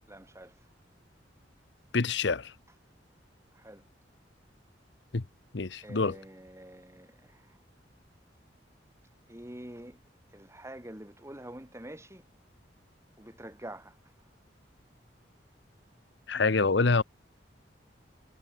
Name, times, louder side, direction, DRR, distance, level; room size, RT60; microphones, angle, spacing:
voice 1, 0.1-0.7 3.5-3.9 5.8-7.6 9.3-10.0 10.3-12.3 13.2-14.0, right 1 dB, 15° right, 3.7 m, -46 dB
voice 2, 1.9-2.5 5.1-5.2 5.5-6.1 16.3-17.0, left 4 dB, 70° left, 0.9 m, -26 dB
head